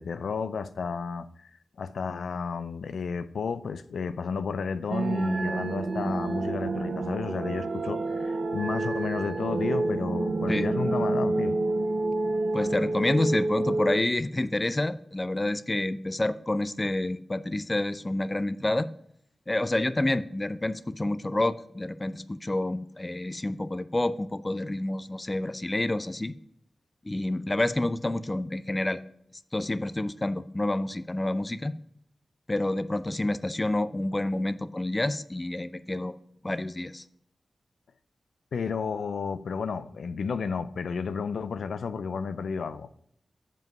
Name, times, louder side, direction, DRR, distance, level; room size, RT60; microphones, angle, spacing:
voice 1, 0.0-1.5 1.8-11.6 38.5-42.9, left 5 dB, 90° left, 0.3 m, -32 dB
sound 1, 4.9-14.0, right 2 dB, 60° right, 0.5 m, -28 dB
voice 2, 12.5-18.9 19.5-26.3 27.0-29.0 29.5-31.7 32.5-36.1 36.4-37.0, left 1 dB, 25° left, 0.4 m, -28 dB
7.4 x 5.3 x 5.2 m
cardioid pair, 60°, 0 cm